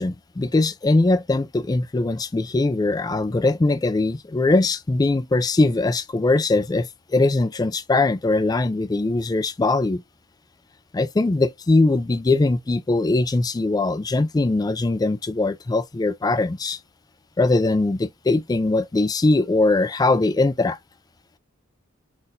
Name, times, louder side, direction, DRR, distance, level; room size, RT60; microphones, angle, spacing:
voice 1, 0.0-10.0 10.9-16.8 17.4-20.8, left 2 dB, 20° left, 0.3 m, -21 dB
4.0 x 2.3 x 3.9 m
head